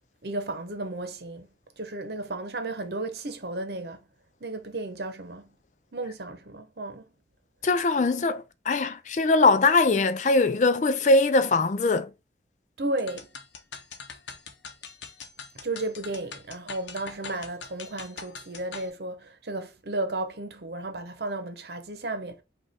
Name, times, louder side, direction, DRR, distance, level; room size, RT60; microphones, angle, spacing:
voice 1, 0.2-1.5 1.8-4.0 4.4-5.5 5.9-7.0 12.8-13.3 15.6-22.4, right 2 dB, 65° right, 0.9 m, -33 dB
voice 2, 7.6-12.1, left 3 dB, 40° left, 0.4 m, -22 dB
sound 1, 13.0-18.9, left 5 dB, 85° left, 0.8 m, -43 dB
5.1 x 2.5 x 4.2 m
head